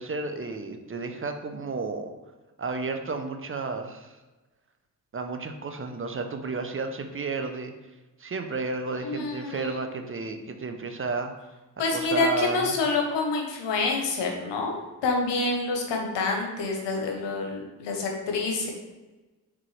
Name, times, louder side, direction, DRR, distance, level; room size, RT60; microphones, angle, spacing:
voice 1, 0.0-2.1 2.6-4.2 5.1-7.7 8.2-11.3 11.9-12.7, right 3 dB, 30° right, 6 dB, 0.6 m, -32 dB
voice 2, 9.0-9.7 11.8-14.7 15.0-18.7, left 3 dB, 85° left, 1 dB, 0.9 m, -27 dB
4.4 x 3.7 x 3.1 m, 1.1 s
supercardioid pair, 45°, 41 cm